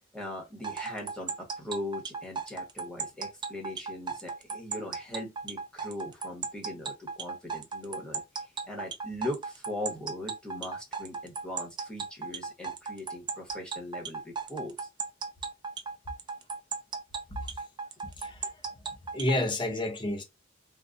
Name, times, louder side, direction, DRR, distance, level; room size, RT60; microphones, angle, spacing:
voice 1, 0.1-14.9, left 1 dB, 5° left, 1.2 m, -40 dB
sound 1, 0.6-19.4, right 5 dB, 20° right, 0.4 m, -36 dB
voice 2, 18.0-18.5 19.1-20.2, left 1 dB, 25° left, 0.7 m, -30 dB
3.5 x 2.4 x 2.5 m
head